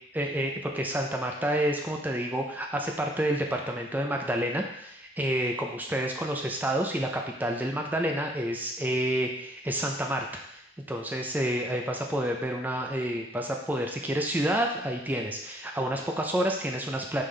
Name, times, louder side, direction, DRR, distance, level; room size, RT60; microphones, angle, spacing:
voice 1, 0.1-10.6 10.9-17.2, right 1 dB, 10° right, 2 dB, 0.5 m, -29 dB
5.4 x 5.3 x 3.3 m, 0.74 s
head